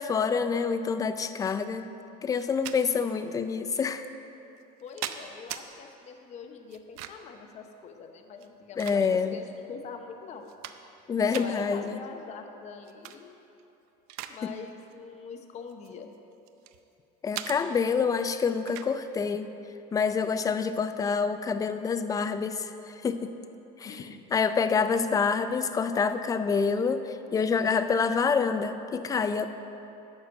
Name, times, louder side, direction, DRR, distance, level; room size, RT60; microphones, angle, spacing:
voice 1, 0.0-1.9 2.2-4.0 8.8-9.4 11.1-12.0 14.4-14.5 17.2-19.5 19.9-23.3 23.8-24.0 24.3-29.5, left 5 dB, 20° left, 10 dB, 0.4 m, -27 dB
sound 1, 2.3-2.8 3.7-3.8 4.6-5.6 6.7-7.3 8.3-9.4 9.9-10.0 10.4-11.0 11.3-11.5 12.8-13.2 13.6-14.4 14.7-14.9 15.7-16.8 17.3-17.6 18.7-18.9, right 12 dB, 85° right, 0.6 m, -39 dB
voice 2, 4.8-10.5 11.2-13.4 14.3-16.1 23.8-24.2, left 6 dB, 35° left, 5 dB, 0.8 m, -44 dB
12.0 x 4.5 x 7.8 m, 3.0 s
cardioid pair, 140°, 19 cm